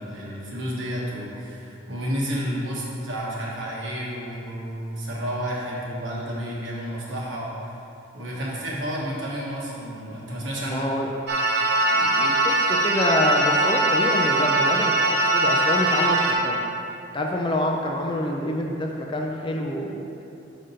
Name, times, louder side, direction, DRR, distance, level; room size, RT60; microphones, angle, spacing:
voice 1, 0.0-7.5 8.1-10.9, equal, 70° right, -5 dB, 1.5 m, -31 dB
voice 2, 10.6-11.1 11.8-14.9 15.3-16.6 17.1-20.3, left 1 dB, 25° left, 0 dB, 0.5 m, -27 dB
sound 1, 11.3-16.3, right 2 dB, 50° right, 0.7 m, -21 dB
5.3 x 5.0 x 5.6 m, 2.7 s
head